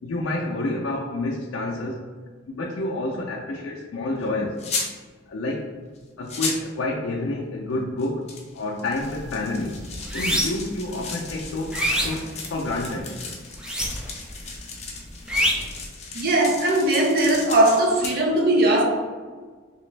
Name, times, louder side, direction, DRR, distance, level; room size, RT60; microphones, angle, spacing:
voice 1, 0.0-2.0 2.5-4.6 5.3-5.7 6.2-8.3 8.5-9.8 10.1-13.1, left 2 dB, 85° left, -2 dB, 0.4 m, -29 dB
sound 1, 4.6-4.9 6.0-6.1 6.3-6.7 8.0-18.1, left 4 dB, 35° left, 0.6 m, -35 dB
sound 2, 9.0-9.2 9.6-10.7 11.2-12.9 13.5-14.3 14.6-15.8, equal, 5° right, 0.4 m, -26 dB
voice 2, 16.1-18.8, right 1 dB, 50° right, 1 dB, 0.6 m, -19 dB
3.2 x 3.0 x 3.2 m, 1.5 s
head